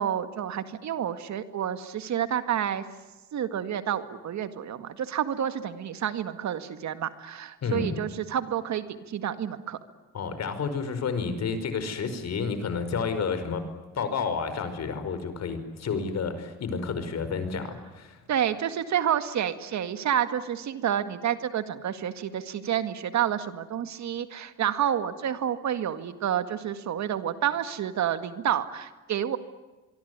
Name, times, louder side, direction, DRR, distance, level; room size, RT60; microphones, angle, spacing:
voice 1, 0.0-2.8 3.3-9.8 18.3-29.4, right 9 dB, 65° right, 11 dB, 2.0 m, -29 dB
voice 2, 7.6-8.0 10.1-13.6 13.9-18.2, left 5 dB, 60° left, 10 dB, 5.1 m, -30 dB
24.5 x 24.0 x 9.6 m, 1.2 s
cardioid pair, 90°, 30 cm